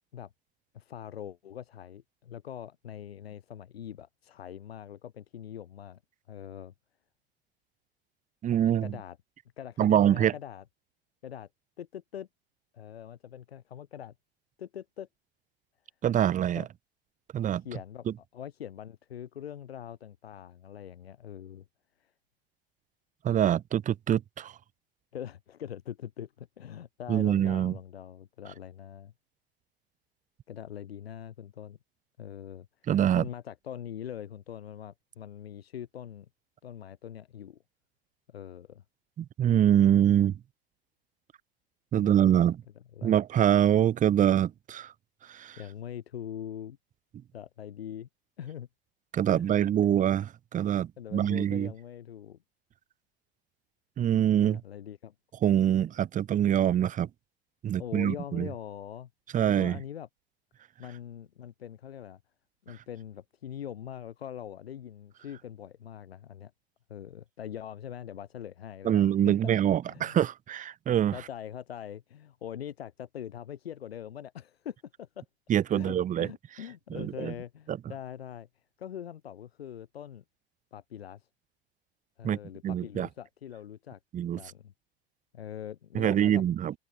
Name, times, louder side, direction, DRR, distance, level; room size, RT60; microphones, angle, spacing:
voice 1, 0.7-6.0 6.3-6.7 8.8-9.2 9.6-10.6 11.2-11.5 11.8-12.3 12.7-14.1 14.6-15.1 16.5-16.7 17.6-21.6 22.0-22.1 25.1-29.1 30.5-31.8 32.2-32.7 33.1-36.3 36.6-37.6 38.3-38.8 41.9-42.5 42.9-43.1 45.6-46.8 47.3-48.1 48.4-48.7 49.3-49.5 51.0-52.4 54.4-55.1 57.8-59.1 59.4-60.1 60.8-62.2 62.6-66.5 66.9-69.5 69.8-70.2 71.1-75.2 75.7-78.5 78.8-80.2 80.7-81.3 82.2-84.0 84.3-84.7 85.3-86.4, left 10 dB, 75° left, 3.2 m, -42 dB
voice 2, 8.4-8.9 9.8-10.3 16.0-16.6 17.3-17.6 18.1-18.2 23.2-24.5 27.1-27.7 32.9-33.2 39.2-40.4 41.9-42.6 43.0-44.9 45.3-45.6 49.1-50.3 50.5-51.7 54.0-54.6 55.4-57.1 57.6-58.5 59.3-59.8 68.8-71.1 75.5-76.3 76.9-77.3 77.7-77.8 82.2-82.4 82.6-83.1 84.1-84.4 85.9-86.7, right 10 dB, 25° right, 0.9 m, -24 dB
open air
figure-of-eight pair, 80°, 31 cm